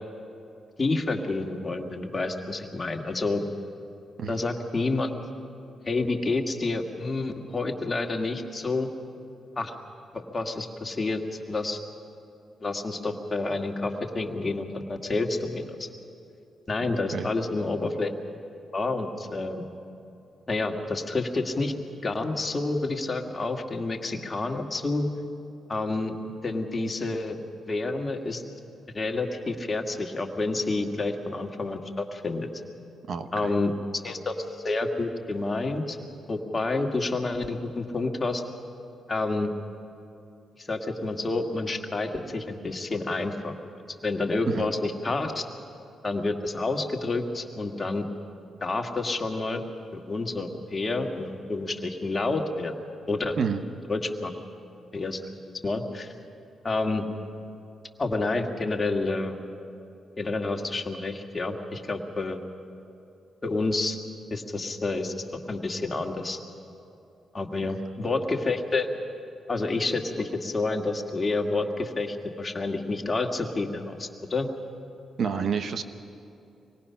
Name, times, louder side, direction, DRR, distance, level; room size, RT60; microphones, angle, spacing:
voice 1, 0.8-3.4 4.3-5.1 5.9-8.9 9.6-9.7 10.1-11.2 11.5-11.8 12.6-15.9 16.7-18.1 18.7-19.6 20.5-21.7 22.0-25.1 25.7-26.1 26.4-27.4 27.7-28.4 28.9-32.5 33.3-34.3 34.6-36.0 36.3-38.4 39.1-39.5 40.6-43.5 44.0-45.4 46.0-48.1 48.6-49.6 49.9-52.7 53.1-53.4 53.9-54.3 54.9-55.2 55.6-56.1 56.6-57.0 58.0-59.4 60.2-62.4 63.4-64.0 64.3-66.4 67.3-68.9 69.5-74.5, left 3 dB, 35° left, 4 dB, 1.8 m, -29 dB
voice 2, 16.8-17.3 33.1-33.5 44.5-44.7 53.4-53.6 67.6-67.7 75.2-75.8, right 6 dB, 65° right, 10 dB, 0.9 m, -29 dB
25.0 x 19.5 x 5.8 m, 2.7 s
cardioid pair, 70°, 0 cm